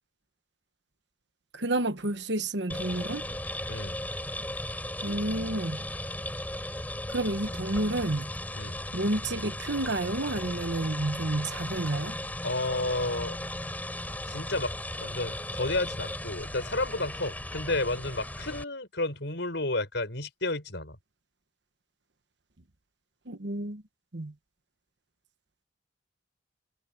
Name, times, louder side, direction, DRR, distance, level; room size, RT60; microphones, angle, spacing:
voice 1, 1.5-3.4 5.0-5.8 7.1-8.3 8.9-12.2 23.3-23.8 24.1-24.3, right 2 dB, 60° right, 1.3 m, -30 dB
sound 1, 2.7-18.6, left 1 dB, 10° left, 7.3 m, -36 dB
voice 2, 12.4-13.4 14.3-14.7 15.0-21.0, left 2 dB, 60° left, 5.7 m, -31 dB
head